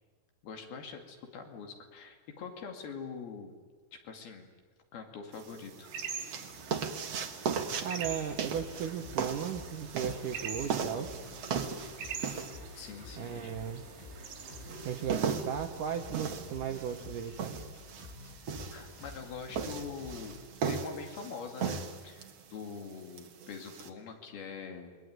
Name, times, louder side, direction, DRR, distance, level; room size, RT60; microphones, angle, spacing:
voice 1, 0.4-3.5 3.9-4.5 4.9-5.9 12.8-13.5 18.7-20.4 20.7-25.0, left 5 dB, 65° left, 4 dB, 4.1 m, -44 dB
sound 1, 5.3-23.9, right 6 dB, 50° right, 1.9 m, -38 dB
sound 2, 5.8-15.3, right 6 dB, 90° right, 5.2 m, -45 dB
sound 3, 7.8-20.5, left 4 dB, 80° left, 8.5 m, -50 dB
voice 2, 7.8-11.1 13.2-13.8 14.8-17.6, right 8 dB, 70° right, 5 dB, 2.1 m, -36 dB
28.0 x 22.0 x 9.5 m, 1.4 s
omnidirectional pair, 5.0 m